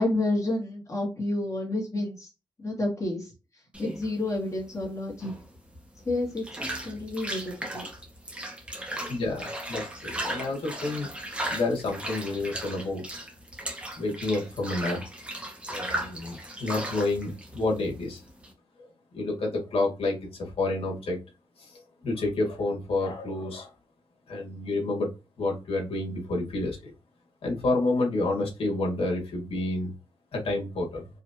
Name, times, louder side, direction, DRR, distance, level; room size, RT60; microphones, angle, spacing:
voice 1, 0.0-2.3 2.6-3.3 3.8-5.3 6.1-7.9, left 2 dB, 35° left, -3 dB, 2.4 m, -30 dB
sound 1, 3.7-18.5, right 1 dB, 10° right, 1.5 m, -37 dB
voice 2, 9.1-11.1 11.5-13.0 13.9-15.0 15.7-18.2 18.8-18.9 19.1-21.2 21.6-23.7 24.3-25.1 25.4-26.9 27.4-29.9 30.3-31.1, left 2 dB, 80° left, -1 dB, 2.1 m, -29 dB
4.9 x 3.3 x 2.9 m, 0.29 s
wide cardioid pair, 110°, 10 cm